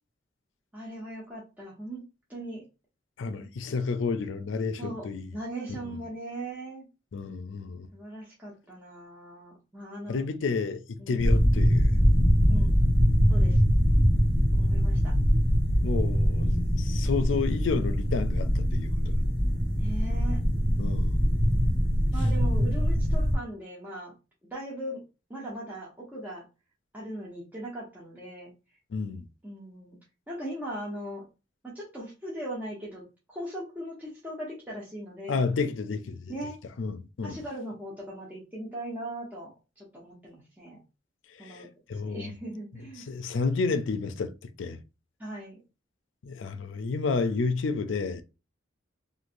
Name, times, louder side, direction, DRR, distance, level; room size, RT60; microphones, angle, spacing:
voice 1, 0.7-2.0 2.3-2.6 4.8-6.9 7.9-10.2 11.0-11.4 12.5-12.8 13.3-13.6 14.5-15.2 19.8-20.4 22.1-24.1 24.5-25.0 25.3-26.5 26.9-28.5 29.4-30.0 30.3-31.2 31.6-33.0 33.3-35.5 36.3-36.6 37.2-40.8 41.4-41.7 42.0-43.1 45.2-45.6, right 1 dB, 10° right, 0.8 m, -39 dB
voice 2, 3.2-5.3 5.7-6.0 7.1-7.9 10.1-11.9 15.8-19.1 20.8-21.3 28.9-29.2 35.3-36.3 36.8-37.4 41.4-42.3 43.1-44.3 44.6-44.8 46.2-48.2, left 4 dB, 75° left, 0.4 m, -31 dB
sound 1, 11.2-23.4, equal, 60° right, 1.1 m, -23 dB
3.1 x 2.6 x 2.5 m
head